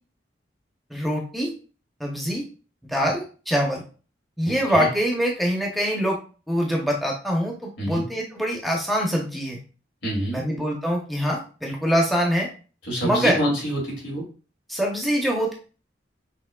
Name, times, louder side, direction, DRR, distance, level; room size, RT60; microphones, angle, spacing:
voice 1, 0.9-1.5 2.0-2.4 2.8-3.8 4.4-6.2 6.5-9.6 10.3-12.5 13.0-13.4 14.7-15.5, equal, ahead, -1 dB, 0.7 m, -24 dB
voice 2, 4.5-4.9 7.8-8.0 10.0-10.5 12.8-14.3, right 1 dB, 90° left, -4 dB, 2.4 m, -27 dB
6.0 x 3.0 x 2.2 m, 0.37 s
head